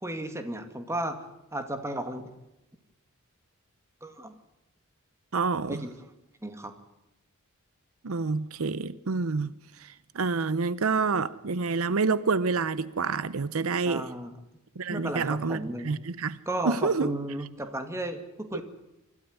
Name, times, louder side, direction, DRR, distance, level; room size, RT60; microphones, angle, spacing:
voice 1, 0.0-1.2 1.5-2.2 4.0-4.3 5.7-6.1 6.4-6.7 13.9-14.4 14.9-15.9 16.5-18.6, right 1 dB, 15° right, 2.2 m, -34 dB
voice 2, 5.3-5.8 8.0-9.5 9.8-14.0 14.8-16.4 16.6-17.1, right 4 dB, 75° right, 0.7 m, -28 dB
25.0 x 13.0 x 9.6 m
head